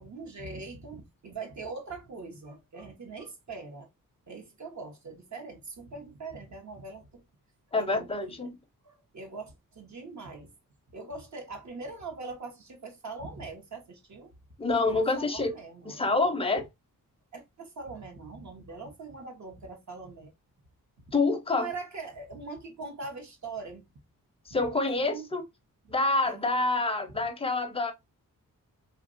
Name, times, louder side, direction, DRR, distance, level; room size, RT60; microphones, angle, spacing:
voice 1, 0.0-3.9 4.3-7.2 7.7-8.5 8.8-10.5 10.9-14.3 14.9-16.2 17.3-20.3 21.5-23.9 24.5-24.6 24.9-25.3 25.8-25.9 26.2-26.5, right 3 dB, 55° right, 1.0 m, -42 dB
voice 2, 7.7-8.6 14.6-15.5 15.9-16.7 21.1-21.7 24.5-25.4 25.9-27.9, left 3 dB, 15° left, 0.5 m, -27 dB
3.1 x 2.4 x 2.4 m
wide cardioid pair, 140°, 34 cm